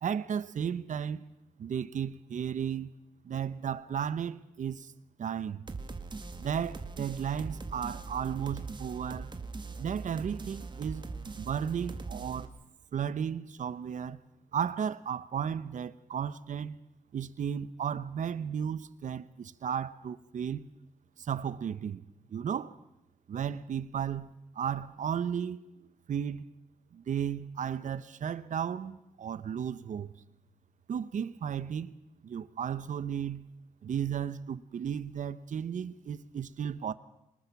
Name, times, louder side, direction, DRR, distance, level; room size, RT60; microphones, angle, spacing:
voice 1, 0.0-1.2 1.6-2.9 3.2-4.9 5.2-5.7 6.4-9.3 9.8-11.0 11.4-12.5 12.9-14.2 14.5-16.8 17.1-20.7 21.2-22.0 22.3-22.7 23.3-26.5 26.9-30.1 30.9-31.9 32.2-33.5 33.8-36.9, right 8 dB, 65° right, 1.0 m, -34 dB
sound 1, 5.7-12.5, right 4 dB, 35° right, 1.8 m, -41 dB
24.0 x 21.0 x 6.0 m
cardioid pair, 95°, 14 cm